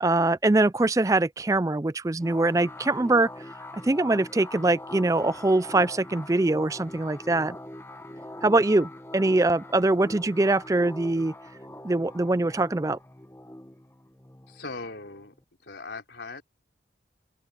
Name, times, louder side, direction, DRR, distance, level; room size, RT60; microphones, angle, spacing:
voice 1, 0.0-3.3 3.7-7.6 8.4-11.3 11.8-13.0, right 2 dB, 20° right, 0.4 m, -23 dB
sound 1, 2.2-15.4, left 1 dB, 15° left, 1.3 m, -43 dB
voice 2, 14.5-15.3 15.6-16.4, left 3 dB, 75° left, 3.8 m, -39 dB
open air
head